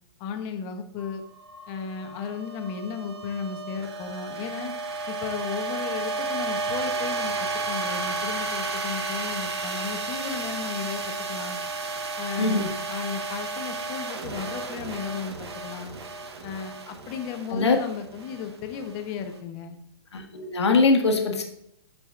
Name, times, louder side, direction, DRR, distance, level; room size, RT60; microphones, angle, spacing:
voice 1, 0.2-1.2 1.7-4.7 5.1-11.6 12.2-15.9 16.4-19.8, left 6 dB, 30° left, 6 dB, 1.0 m, -35 dB
sound 1, 1.0-19.3, right 3 dB, 75° right, 1.1 m, -33 dB
voice 2, 12.4-12.7 17.5-17.8 20.1-21.4, left 3 dB, 80° left, 3 dB, 1.4 m, -22 dB
12.0 x 5.0 x 2.5 m, 0.76 s
hypercardioid pair, 140°, 14 cm